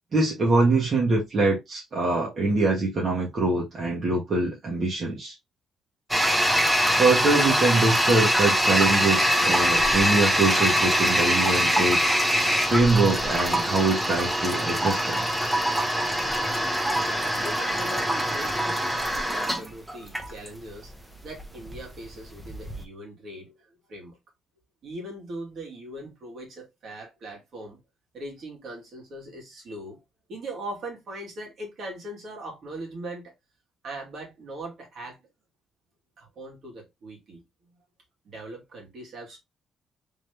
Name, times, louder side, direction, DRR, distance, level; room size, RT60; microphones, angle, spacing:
voice 1, 0.1-5.3 7.0-12.0 12.7-15.2, right 3 dB, 45° right, 1.6 m, -23 dB
Toilet flush, 6.1-22.8, equal, 10° right, 0.9 m, -24 dB
voice 2, 17.4-20.9 21.2-24.2 24.8-27.8 28.1-30.0 30.3-33.3 33.8-35.2 36.2-37.7 38.2-39.4, right 1 dB, 60° right, 2.4 m, -40 dB
3.8 x 3.1 x 3.4 m
cardioid pair, 90°, 0 cm